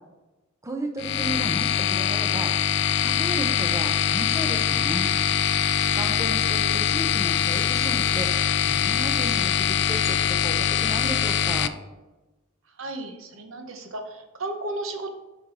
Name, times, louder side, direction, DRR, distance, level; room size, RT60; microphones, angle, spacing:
voice 1, 0.6-2.5 3.0-5.1 5.9-8.3 8.6-11.7, right 1 dB, 15° right, 3 dB, 0.6 m, -34 dB
sound 1, 1.0-11.7, left 9 dB, 55° left, 0.3 m, -23 dB
voice 2, 12.7-15.1, right 2 dB, 65° right, 6 dB, 0.8 m, -34 dB
5.8 x 5.3 x 3.8 m, 1.1 s
head